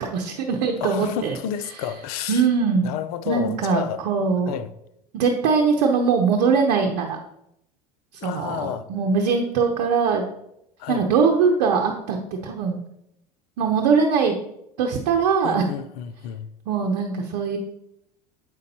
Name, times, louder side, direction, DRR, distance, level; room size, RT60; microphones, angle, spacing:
voice 1, 0.0-1.4 2.3-2.9 3.3-4.6 5.1-7.2 8.2-10.2 10.9-12.2 12.4-12.8 13.6-14.3 14.8-15.6 16.7-17.6, right 5 dB, 65° right, 0.8 m, -21 dB
voice 2, 0.8-2.4 2.8-4.0 4.5-4.7 8.2-8.9 10.8-11.0 15.4-16.5, left 10 dB, 65° left, 0.5 m, -30 dB
7.6 x 5.2 x 2.9 m
hypercardioid pair, 85°, 21 cm